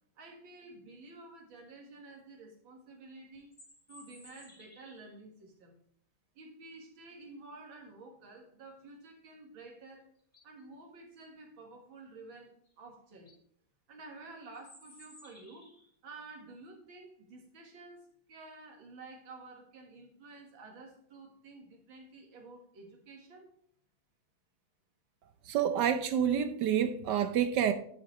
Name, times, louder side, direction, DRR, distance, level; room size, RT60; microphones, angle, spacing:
voice 1, 0.2-3.5 3.9-5.8 6.3-10.1 10.4-13.3 13.9-15.7 16.0-23.5, right 3 dB, 90° right, 2.5 m, -51 dB
sound 1, 3.3-5.2 9.7-9.8 10.2-10.6 12.6-12.7 13.1-13.4 14.5-15.9, left 1 dB, 25° left, 2.9 m, -57 dB
voice 2, 25.5-27.7, right 9 dB, 70° right, 1.2 m, -28 dB
9.9 x 7.3 x 3.2 m
omnidirectional pair, 2.1 m